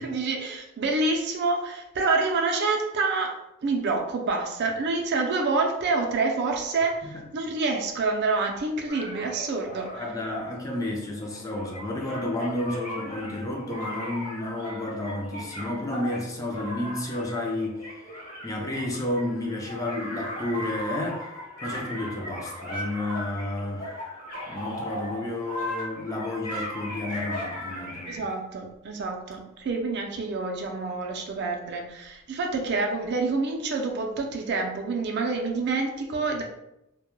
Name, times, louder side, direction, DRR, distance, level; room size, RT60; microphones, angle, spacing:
voice 1, 0.0-3.3 3.6-10.0 28.1-36.4, right 3 dB, 55° right, 3 dB, 0.4 m, -27 dB
sound 1, 8.9-28.2, left 1 dB, 40° left, 0.8 m, -37 dB
voice 2, 9.9-17.8 18.4-21.3 21.6-23.9 24.5-28.2, left 1 dB, 15° left, 0 dB, 0.3 m, -31 dB
2.1 x 2.1 x 3.0 m, 0.86 s
head